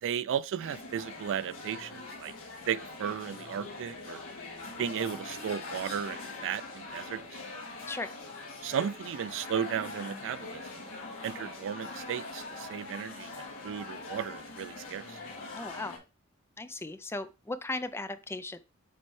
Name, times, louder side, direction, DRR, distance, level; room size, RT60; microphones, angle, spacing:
voice 1, 0.0-2.3 2.7-4.2 4.8-7.4 8.6-10.8 11.2-15.2, right 8 dB, 60° right, 0.3 m, -35 dB
sound 1, 0.6-16.0, left 3 dB, 60° left, 2.3 m, -42 dB
voice 2, 15.5-16.0 16.6-18.6, left 2 dB, 10° left, 0.4 m, -37 dB
6.8 x 4.4 x 3.1 m
head